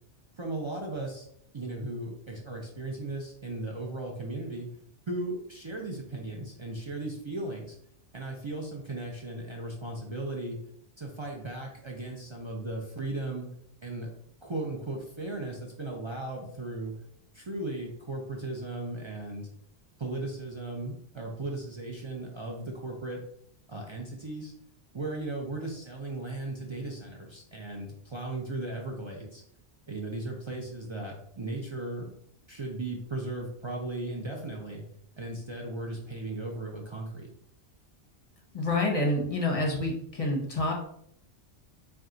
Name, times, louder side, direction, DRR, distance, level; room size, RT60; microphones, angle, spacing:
voice 1, 0.4-1.3 1.5-4.7 5.1-7.7 8.1-10.6 11.0-13.5 13.8-14.1 14.4-17.0 17.3-19.5 20.0-23.2 23.7-24.5 24.9-29.4 29.9-32.1 32.5-34.8 35.2-37.3, right 2 dB, 45° right, -1 dB, 0.4 m, -36 dB
voice 2, 38.5-40.7, left 2 dB, 35° left, 0 dB, 0.8 m, -27 dB
4.3 x 2.3 x 3.7 m, 0.69 s
omnidirectional pair, 1.2 m